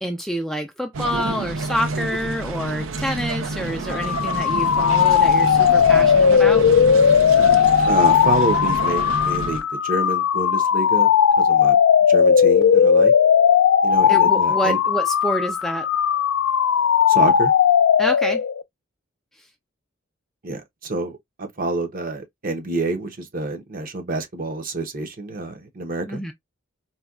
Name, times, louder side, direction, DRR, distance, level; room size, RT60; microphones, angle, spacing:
voice 1, 0.0-6.6 14.1-15.9 18.0-18.4 26.1-26.3, equal, ahead, 0.3 m, -27 dB
sound 1, 0.9-9.6, right 3 dB, 85° right, 0.6 m, -28 dB
sound 2, 3.9-18.6, left 7 dB, 80° left, 0.4 m, -17 dB
voice 2, 7.9-11.8 12.1-13.1 13.8-14.8 17.1-17.5 20.4-26.2, right 2 dB, 45° right, 0.8 m, -28 dB
4.1 x 2.2 x 2.4 m
head